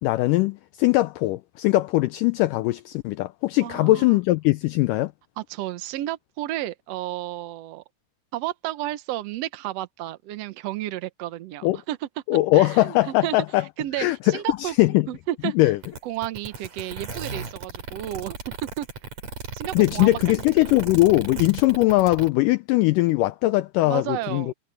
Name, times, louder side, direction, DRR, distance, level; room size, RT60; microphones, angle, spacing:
voice 1, 0.0-5.1 11.6-11.8 12.3-13.7 14.0-15.1 15.6-15.8 19.8-24.5, left 18 dB, 85° left, 1.9 m, -21 dB
voice 2, 3.6-4.2 5.4-7.8 8.3-14.8 15.1-15.7 16.0-18.4 18.8-18.9 19.5-20.2 20.6-20.7 23.8-24.5, right 14 dB, 80° right, 1.4 m, -32 dB
sound 1, 15.8-22.3, right 4 dB, 50° right, 5.3 m, -35 dB
omnidirectional pair, 4.3 m